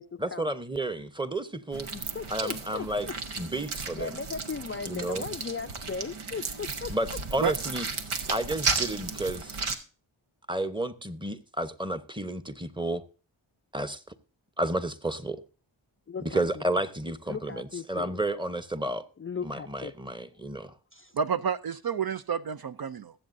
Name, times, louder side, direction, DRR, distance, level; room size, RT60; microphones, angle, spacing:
voice 1, 0.2-1.9 2.3-3.1 3.4-4.2 4.8-5.3 6.9-7.9 8.3-9.6 10.5-13.0 13.7-14.0 14.6-15.4 16.2-19.0 19.4-20.7, right 1 dB, 10° right, 0.9 m, -31 dB
sound 1, 1.7-9.7, right 4 dB, 80° right, 1.1 m, -34 dB
voice 2, 1.9-3.1 3.9-6.9 16.1-16.6 17.3-18.2 19.2-19.9 20.9-21.1, left 5 dB, 30° left, 0.4 m, -37 dB
voice 3, 21.1-23.1, right 6 dB, 50° right, 0.5 m, -29 dB
21.0 x 7.7 x 2.6 m
cardioid pair, 45°, 48 cm